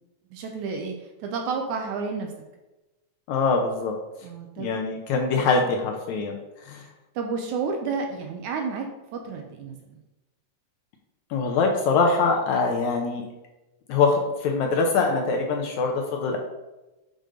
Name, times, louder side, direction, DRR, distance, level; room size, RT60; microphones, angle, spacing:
voice 1, 0.3-2.3 4.2-4.7 5.3-5.5 7.2-10.0, right 5 dB, 75° right, 3 dB, 2.0 m, -31 dB
voice 2, 3.3-3.9 4.6-6.3 6.7-6.8 11.3-13.2 13.9-16.4, left 4 dB, 75° left, 2 dB, 1.9 m, -23 dB
6.6 x 5.2 x 3.8 m, 1.0 s
omnidirectional pair, 3.8 m